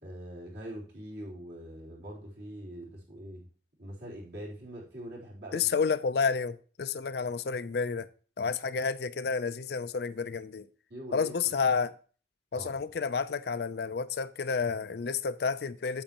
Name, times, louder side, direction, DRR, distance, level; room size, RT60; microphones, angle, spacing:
voice 1, 0.0-3.4 3.8-5.7 10.9-11.4 12.5-12.8, right 1 dB, 60° right, 3.5 m, -43 dB
voice 2, 5.5-8.1 8.4-10.7 11.1-11.9 12.5-16.0, left 5 dB, 55° left, 0.4 m, -30 dB
8.7 x 8.3 x 2.9 m
head